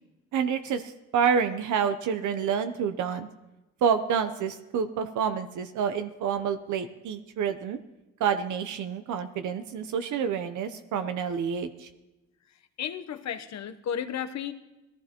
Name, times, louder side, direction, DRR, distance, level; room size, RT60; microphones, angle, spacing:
voice 1, 0.3-3.3 3.8-7.8 8.2-11.9, right 7 dB, 75° right, 9 dB, 0.8 m, -28 dB
voice 2, 12.8-14.5, left 8 dB, 65° left, 10 dB, 1.0 m, -33 dB
19.0 x 15.0 x 3.0 m, 1.0 s
cardioid pair, 90°, 30 cm